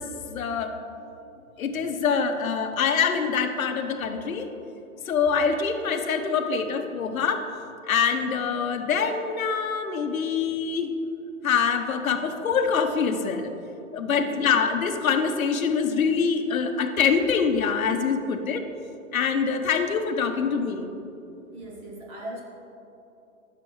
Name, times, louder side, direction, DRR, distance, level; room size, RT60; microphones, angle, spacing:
voice 1, 0.3-0.7 1.6-4.5 5.1-7.4 7.9-10.9 11.4-13.5 13.9-18.6 19.1-21.0, left 6 dB, 75° left, 6 dB, 1.0 m, -25 dB
voice 2, 14.0-14.4 21.5-22.4, right 1 dB, 15° right, -1 dB, 0.7 m, -39 dB
14.0 x 6.8 x 3.2 m, 2.9 s
hypercardioid pair, 150°, 42 cm